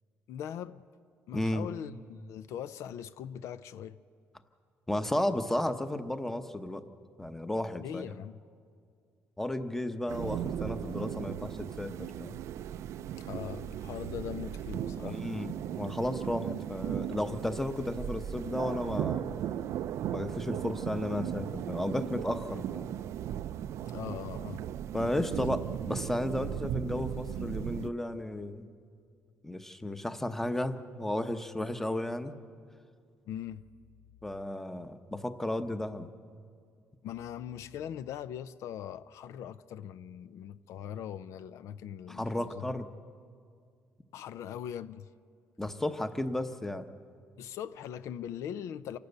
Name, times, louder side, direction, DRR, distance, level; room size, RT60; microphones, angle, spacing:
voice 1, 0.3-0.8 1.3-4.0 7.8-8.4 13.2-15.2 23.8-24.7 33.3-33.7 37.0-42.7 44.1-45.1 47.4-49.0, left 9 dB, 75° left, 0.5 m, -41 dB
voice 2, 1.3-1.7 4.9-6.8 7.2-8.1 9.4-12.4 15.0-19.5 20.1-22.9 24.9-28.7 29.4-32.3 34.2-36.1 42.1-42.9 45.6-46.8, left 1 dB, 5° left, 0.8 m, -33 dB
sound 1, 10.1-27.9, right 10 dB, 70° right, 0.4 m, -37 dB
27.0 x 12.0 x 8.1 m
cardioid pair, 135°, 5 cm